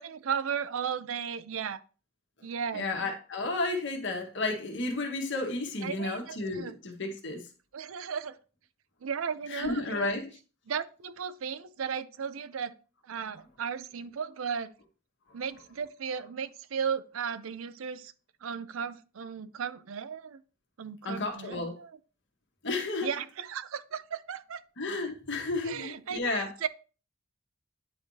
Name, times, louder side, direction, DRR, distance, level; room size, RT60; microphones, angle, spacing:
voice 1, 0.0-1.8 2.4-2.9 5.8-6.8 7.7-8.4 9.0-10.1 10.7-12.8 13.0-14.7 15.3-18.1 18.4-20.4 20.8-21.9 23.0-24.6 25.7-26.7, right 7 dB, 70° right, 0.5 m, -35 dB
voice 2, 2.7-7.4 9.5-10.3 21.0-21.8 22.6-23.1 24.8-26.5, left 3 dB, 60° left, 1.6 m, -32 dB
9.6 x 4.8 x 2.8 m
head